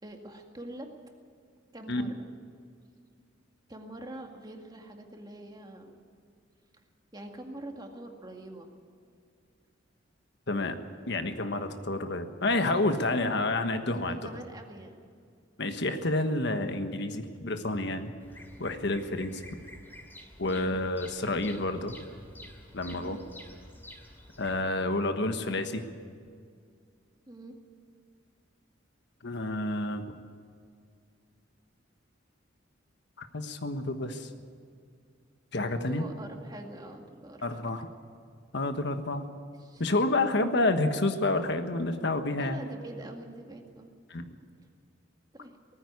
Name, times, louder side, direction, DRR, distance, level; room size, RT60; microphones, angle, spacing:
voice 1, 0.0-0.9 1.7-2.3 3.7-6.0 7.1-8.7 13.8-15.0 19.1-19.3 22.9-23.1 27.3-27.6 35.7-37.7 39.6-39.8 42.4-43.9 45.3-45.6, right 1 dB, 20° right, 3 dB, 2.1 m, -44 dB
voice 2, 10.5-10.8 11.1-14.3 15.6-18.1 18.6-19.4 20.4-22.0 22.7-23.2 24.4-25.8 29.2-30.0 33.2-34.3 35.5-36.0 37.4-37.9 38.5-39.3 39.8-42.6 44.1-44.3, left 2 dB, 65° left, 7 dB, 1.4 m, -29 dB
Bird vocalization bird call bird song, 18.2-24.6, left 1 dB, 10° left, 2.7 m, -50 dB
19.0 x 14.5 x 9.6 m, 2.2 s
head